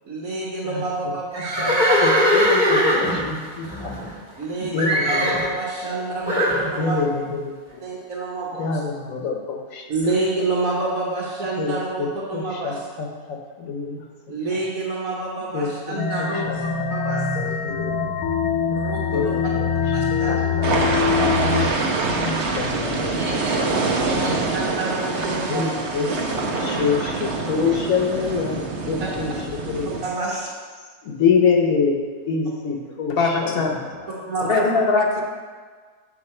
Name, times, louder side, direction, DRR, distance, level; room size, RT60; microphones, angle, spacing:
voice 1, 0.0-2.5 4.4-7.0 7.8-8.7 9.9-12.0 12.3-12.7 14.3-17.5 18.7-19.3 19.9-20.4 21.1-22.2 23.2-23.3 24.1-25.7 29.0-29.1 30.0-30.5 34.1-34.6, right 2 dB, 75° right, -5 dB, 1.6 m, -28 dB
voice 2, 0.6-1.1 1.6-4.0 4.6-5.5 6.8-7.8 8.6-9.9 11.6-14.0 15.5-16.4 16.8-18.3 19.1-19.7 20.2-20.7 22.1-24.0 25.5-29.9 31.0-34.1, left 5 dB, 70° left, 1 dB, 1.2 m, -26 dB
Livestock farm animals working animals, 1.3-4.4 4.8-5.5 6.3-6.6, equal, 35° right, 1.5 m, -20 dB
sound 1, 16.0-21.7, left 6 dB, 85° left, 1.1 m, -23 dB
sound 2, 20.6-30.1, right 3 dB, 55° right, 1.1 m, -25 dB
voice 3, 33.1-33.8 34.5-35.2, left 3 dB, 45° left, 2 dB, 1.0 m, -20 dB
7.3 x 6.8 x 4.3 m, 1.5 s
omnidirectional pair, 1.5 m